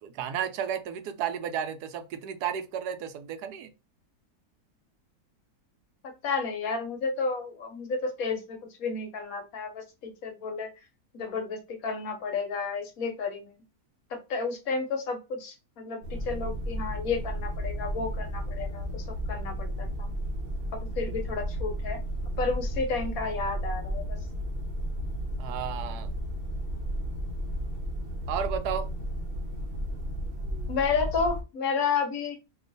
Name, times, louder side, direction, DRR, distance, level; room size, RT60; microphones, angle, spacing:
voice 1, 0.0-3.7 25.4-26.1 28.3-28.9, right 8 dB, 80° right, 1.1 m, -33 dB
voice 2, 6.0-10.7 11.1-13.6 14.1-20.1 20.7-22.0 22.4-24.2 30.7-32.4, left 4 dB, 65° left, 1.2 m, -32 dB
sound 1, 16.0-31.4, equal, 55° right, 0.6 m, -33 dB
2.9 x 2.4 x 3.8 m
omnidirectional pair, 1.7 m